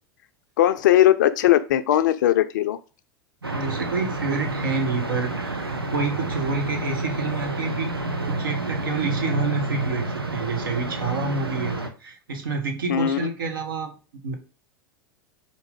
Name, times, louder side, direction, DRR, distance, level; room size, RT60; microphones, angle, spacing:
voice 1, 0.6-2.8 12.9-13.2, left 12 dB, 55° left, 12 dB, 0.4 m, -19 dB
sound 1, 3.4-11.9, right 2 dB, 85° right, 0.5 m, -29 dB
voice 2, 3.5-7.9 8.3-14.3, right 3 dB, 65° right, 3 dB, 1.0 m, -28 dB
4.1 x 2.5 x 3.8 m, 0.34 s
figure-of-eight pair, 90°, 12 cm